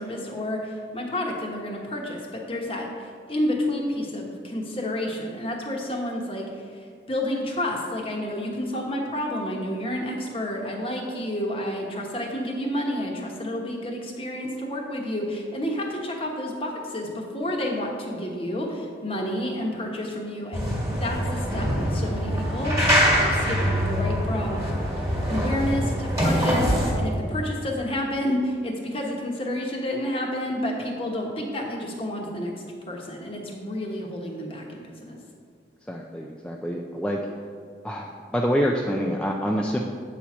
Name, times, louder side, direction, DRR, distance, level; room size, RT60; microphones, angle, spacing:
voice 1, 0.0-24.7 25.3-32.5 32.9-35.2, left 1 dB, 30° left, 0 dB, 1.1 m, -30 dB
sound 1, 20.5-26.9, equal, 15° right, 1.5 m, -24 dB
voice 2, 35.9-37.2 37.8-39.8, equal, 5° left, 0 dB, 0.3 m, -26 dB
8.4 x 4.3 x 6.1 m, 2.2 s
head